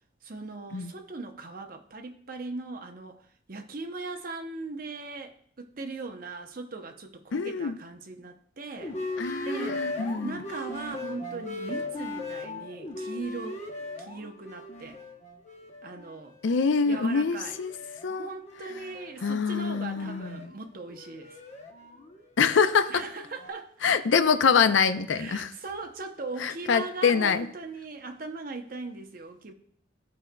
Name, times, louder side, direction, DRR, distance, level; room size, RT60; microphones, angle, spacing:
voice 1, 0.2-9.0 9.4-9.9 10.2-13.7 14.0-15.0 15.8-16.4 16.8-17.6 18.2-21.4 22.9-23.7 25.1-29.5, right 3 dB, 50° right, 5 dB, 0.7 m, -39 dB
voice 2, 7.3-7.8 9.2-10.4 16.4-17.7 18.0-18.3 19.2-20.5 22.4-23.0 23.8-25.5 26.4-27.5, left 5 dB, 75° left, 11 dB, 0.5 m, -25 dB
sound 1, 8.8-16.4 16.9-23.5, left 2 dB, 35° left, 0.8 m, -39 dB
14.5 x 5.0 x 2.2 m, 0.64 s
head